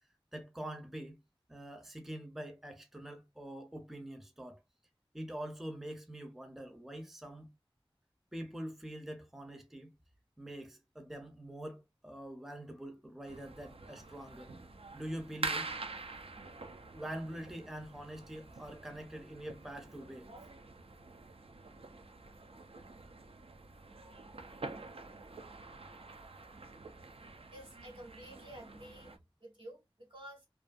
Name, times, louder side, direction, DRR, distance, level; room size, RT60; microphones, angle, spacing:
voice 1, 0.3-1.2 1.5-4.6 5.1-7.5 8.3-9.9 10.4-14.6 14.9-15.7 16.9-20.3, right 1 dB, 5° right, 0.5 m, -45 dB
sound 1, 13.3-29.2, right 3 dB, 85° right, 0.4 m, -46 dB
voice 2, 27.5-29.1 29.4-30.5, right 1 dB, 65° right, 1.4 m, -51 dB
2.5 x 2.4 x 2.3 m
wide cardioid pair, 40°, 10 cm